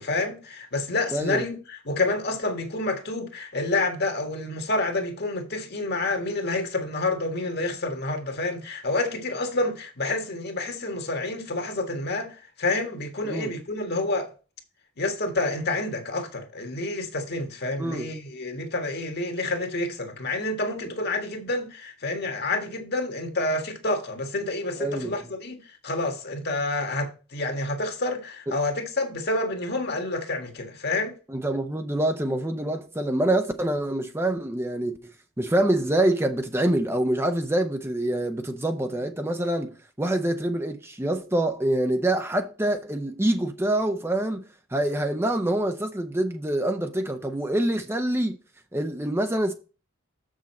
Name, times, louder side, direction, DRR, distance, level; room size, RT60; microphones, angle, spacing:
voice 1, 0.0-14.3 15.0-31.1, left 2 dB, 50° left, 1.6 m, -28 dB
voice 2, 1.1-1.4 13.2-13.5 17.8-18.1 24.8-25.1 31.3-35.0 35.4-48.4 48.7-49.5, right 1 dB, 10° right, 0.6 m, -26 dB
7.1 x 6.3 x 4.2 m
head